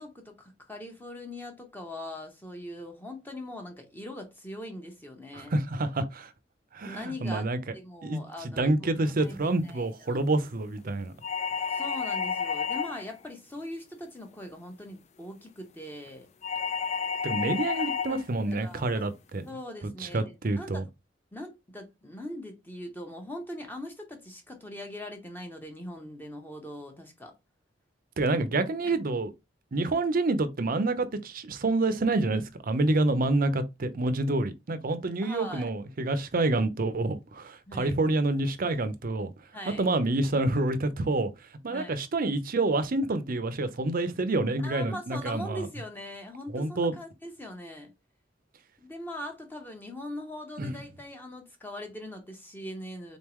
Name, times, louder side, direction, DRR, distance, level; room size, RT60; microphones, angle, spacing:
voice 1, 0.0-5.5 6.8-7.4 7.7-8.8 9.1-10.2 11.6-16.3 17.7-17.9 18.5-18.9 19.5-20.8 21.3-27.3 28.8-29.0 35.2-35.7 37.7-38.0 39.5-39.9 41.7-42.0 44.6-47.9 48.8-53.2, left 1 dB, 10° left, 0.9 m, -41 dB
voice 2, 5.3-6.3 6.7-7.6 8.0-11.1 17.2-19.4 20.0-20.8 28.2-29.3 29.7-39.3 39.8-41.3 41.6-45.7 46.5-46.9 50.6-50.7, right 2 dB, 50° right, 0.6 m, -28 dB
sound 1, 11.2-13.2 16.4-18.2, left 6 dB, 35° left, 0.4 m, -30 dB
3.9 x 3.6 x 3.0 m
head